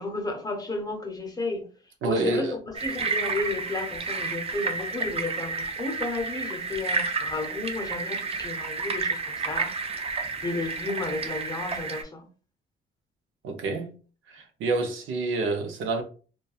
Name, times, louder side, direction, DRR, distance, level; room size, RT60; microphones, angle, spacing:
voice 1, 0.0-1.7 2.0-9.7 10.4-12.2, left 3 dB, 20° left, 0.7 m, -32 dB
voice 2, 2.0-2.5 13.4-13.9 14.3-16.0, right 3 dB, 80° right, 0.6 m, -27 dB
sound 1, 2.7-12.0, right 4 dB, 30° right, 0.4 m, -31 dB
2.6 x 2.2 x 2.3 m
cardioid pair, 90°, 20 cm